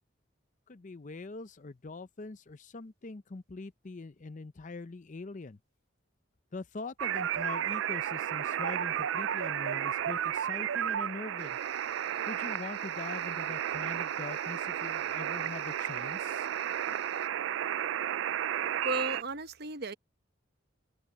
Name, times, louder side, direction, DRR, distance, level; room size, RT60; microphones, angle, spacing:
voice 1, 0.7-5.6 6.5-11.6 12.3-16.5, left 3 dB, 40° left, 0.6 m, -43 dB
sound 1, 7.0-19.2, right 10 dB, 70° right, 0.3 m, -33 dB
sound 2, 11.4-17.3, left 12 dB, 60° left, 6.9 m, -58 dB
voice 2, 18.8-19.9, right 2 dB, 55° right, 1.0 m, -34 dB
head